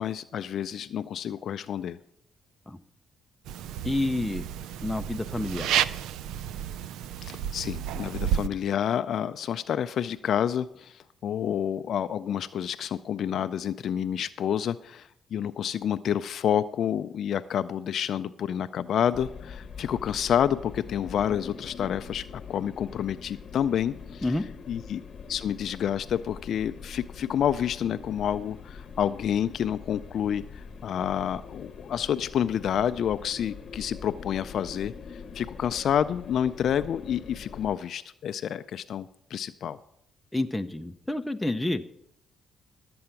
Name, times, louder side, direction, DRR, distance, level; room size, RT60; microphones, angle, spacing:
voice 1, 0.0-2.0 7.2-24.3 24.7-25.0 25.3-39.8, left 9 dB, 65° left, 12 dB, 0.3 m, -29 dB
sound 1, 3.5-8.5, right 10 dB, 90° right, 0.3 m, -31 dB
voice 2, 3.8-4.5 4.8-5.7 24.2-24.4 40.3-41.8, left 2 dB, 10° left, 7 dB, 0.6 m, -29 dB
sound 2, 19.1-37.8, left 6 dB, 50° left, 0.9 m, -43 dB
12.5 x 7.7 x 5.8 m, 0.78 s
cardioid pair, 90°, 0 cm